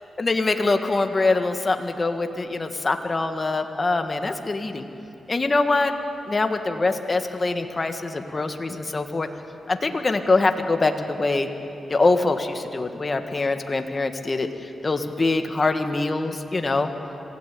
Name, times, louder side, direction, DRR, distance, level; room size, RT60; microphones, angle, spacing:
voice 1, 0.2-4.9 5.3-5.9 6.3-9.3 9.7-11.5 11.9-16.9, left 3 dB, 35° left, 6 dB, 1.7 m, -24 dB
27.0 x 17.5 x 8.5 m, 2.9 s
cardioid pair, 80°, 0 cm